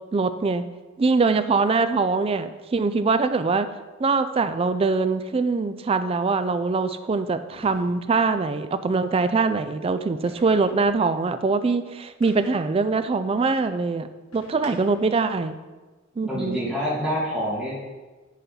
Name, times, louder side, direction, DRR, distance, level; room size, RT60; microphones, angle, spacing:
voice 1, 0.1-0.7 1.0-3.7 4.0-14.1 14.3-15.6 16.2-16.6, right 4 dB, 25° right, 11 dB, 0.3 m, -23 dB
sound 1, 5.3-5.4 7.5-8.2 10.3-10.8 12.2-12.7 14.3-15.1, left 2 dB, 85° left, 1.5 m, -47 dB
voice 2, 16.2-17.7, equal, 5° right, -9 dB, 2.1 m, -26 dB
10.5 x 4.2 x 3.9 m, 1.2 s
head